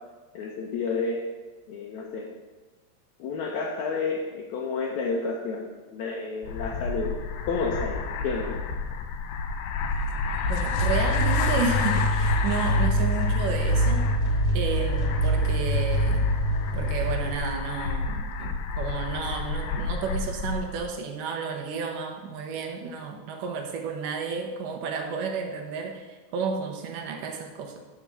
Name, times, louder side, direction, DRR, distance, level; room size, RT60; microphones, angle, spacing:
voice 1, 0.3-1.3 1.7-2.3 3.2-7.1 7.5-8.6, left 4 dB, 70° left, -2 dB, 1.8 m, -30 dB
sound 1, 6.4-20.9, left 4 dB, 85° left, 2.4 m, -30 dB
voice 2, 10.5-14.1 14.5-16.3 16.7-27.8, right 5 dB, 75° right, 3 dB, 2.3 m, -32 dB
sound 2, 10.8-17.4, right 1 dB, 10° left, 1.7 m, -25 dB
10.5 x 3.7 x 6.7 m, 1.2 s
omnidirectional pair, 4.1 m